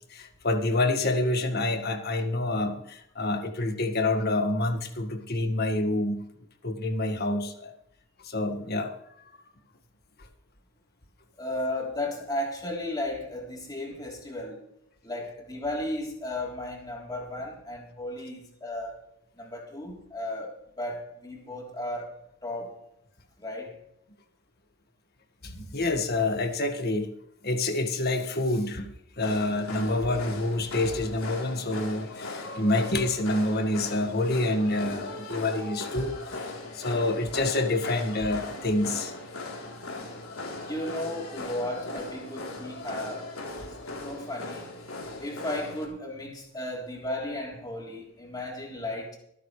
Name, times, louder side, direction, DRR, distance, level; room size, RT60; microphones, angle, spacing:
voice 1, 0.1-6.2 6.6-7.7 8.2-9.3 25.4-27.1 27.4-28.9 29.2-36.5 36.7-39.1 42.9-43.0, left 2 dB, 50° left, 1.8 m, -27 dB
voice 2, 11.4-14.7 15.0-19.0 19.4-22.1 22.4-22.8 23.4-23.7 40.6-43.5 44.0-44.7 45.2-49.2, left 1 dB, 20° left, 3.5 m, -34 dB
sound 1, 29.2-45.9, left 2 dB, 90° left, 3.7 m, -39 dB
24.5 x 9.7 x 3.3 m
head